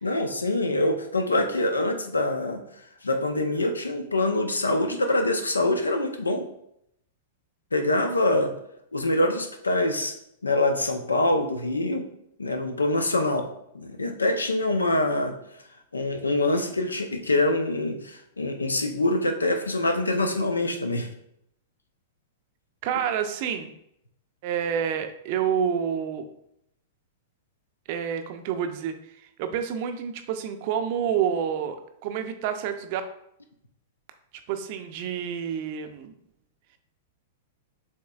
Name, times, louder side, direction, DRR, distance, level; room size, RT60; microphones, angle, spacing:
voice 1, 0.0-2.6 3.0-6.5 7.7-8.5 8.9-10.1 10.4-12.0 12.4-13.5 13.7-15.3 15.9-21.1, left 2 dB, 85° left, 6 dB, 0.6 m, -25 dB
voice 2, 22.8-23.7 24.4-26.2 27.9-28.9 29.4-33.0 34.5-36.1, right 8 dB, 50° right, 8 dB, 0.5 m, -28 dB
7.2 x 3.0 x 2.3 m, 0.75 s
figure-of-eight pair, 100°, 0 cm